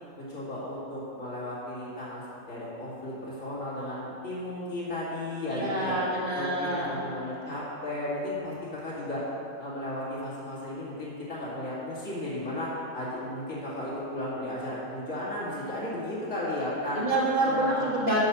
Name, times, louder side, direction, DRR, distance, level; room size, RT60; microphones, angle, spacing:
voice 1, 0.2-2.2 2.5-6.0 6.3-9.2 9.6-17.0 17.4-17.9, left 1 dB, 70° left, -9 dB, 3.0 m, -34 dB
voice 2, 5.5-6.9 16.9-18.2, right 1 dB, 40° right, -6 dB, 2.1 m, -27 dB
9.8 x 5.6 x 5.8 m, 2.6 s
omnidirectional pair, 1.4 m